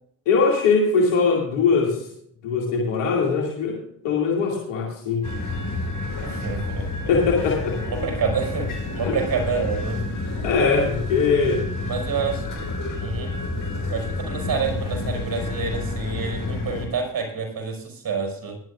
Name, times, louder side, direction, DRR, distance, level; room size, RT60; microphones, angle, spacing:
voice 1, 0.3-2.1 2.4-3.8 4.0-5.2 7.1-7.8 9.0-9.1 10.4-11.6, left 4 dB, 90° left, -2 dB, 2.5 m, -21 dB
sound 1, 5.2-16.9, left 2 dB, 50° left, 5.0 m, -29 dB
voice 2, 6.2-7.1 7.8-10.1 11.8-12.5 13.0-13.4 13.9-18.6, right 5 dB, 55° right, 3 dB, 5.6 m, -28 dB
18.5 x 11.5 x 2.4 m, 0.68 s
supercardioid pair, 50°, 43 cm